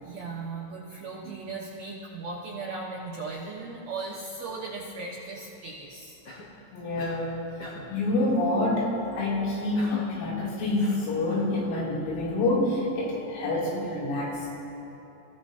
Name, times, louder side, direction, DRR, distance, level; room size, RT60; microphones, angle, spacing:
voice 1, 0.0-6.2, right 3 dB, 75° right, -4 dB, 2.2 m, -37 dB
Cough, 6.2-6.6 7.0-7.3 7.6-8.0 9.7-10.2 10.8-11.5, left 2 dB, 45° left, 1.9 m, -41 dB
voice 2, 6.7-7.3 7.9-14.5, left 2 dB, 80° left, -6 dB, 5.7 m, -27 dB
28.0 x 15.5 x 2.8 m, 3.0 s
omnidirectional pair, 6.0 m